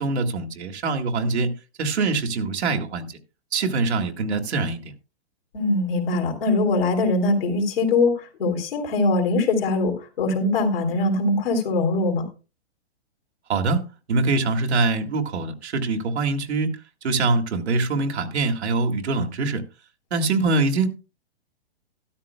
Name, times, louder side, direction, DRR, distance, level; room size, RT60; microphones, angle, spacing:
voice 1, 0.0-1.5 1.8-3.1 3.5-4.9 13.5-13.8 14.1-16.7 17.0-19.6 20.1-20.9, right 3 dB, 80° right, 2.0 m, -23 dB
voice 2, 5.5-12.2, left 2 dB, 60° left, 3.0 m, -22 dB
14.0 x 13.0 x 2.2 m
hypercardioid pair, 160°, 33 cm